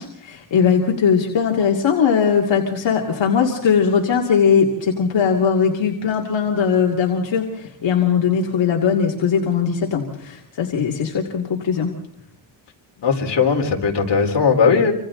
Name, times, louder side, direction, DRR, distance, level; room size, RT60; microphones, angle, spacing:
voice 1, 0.0-11.9, left 6 dB, 85° left, 0 dB, 2.5 m, -19 dB
voice 2, 13.0-14.9, left 5 dB, 70° left, 1 dB, 4.0 m, -18 dB
27.5 x 26.0 x 3.9 m, 0.75 s
wide cardioid pair, 130°, 44 cm